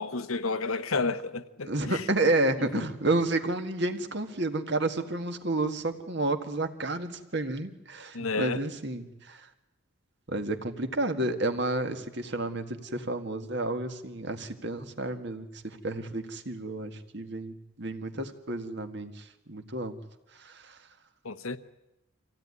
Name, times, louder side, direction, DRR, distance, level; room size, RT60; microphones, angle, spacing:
voice 1, 0.0-2.0 2.6-2.8 8.1-8.6 21.2-21.6, left 3 dB, 90° left, 1.1 m, -31 dB
voice 2, 1.6-9.5 10.3-20.0 20.4-20.8, right 2 dB, 55° right, 1.8 m, -31 dB
25.5 x 16.5 x 9.7 m
head